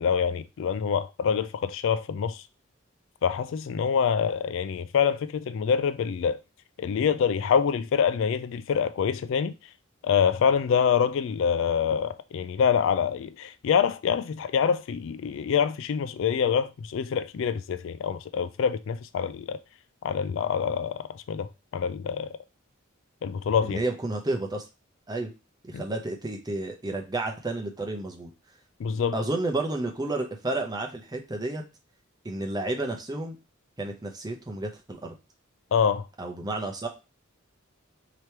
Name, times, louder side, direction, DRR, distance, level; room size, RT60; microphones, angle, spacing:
voice 1, 0.0-2.4 3.2-6.4 6.8-9.5 10.0-19.6 20.0-21.5 21.7-22.3 23.2-23.8 25.7-25.8 28.8-29.1 35.7-36.0, left 7 dB, 65° left, 0.3 m, -25 dB
voice 2, 23.6-24.7 25.1-25.3 25.6-28.3 29.1-31.6 32.2-33.4 33.8-35.1 36.2-36.9, right 2 dB, 20° right, 0.7 m, -31 dB
3.4 x 2.9 x 4.4 m
head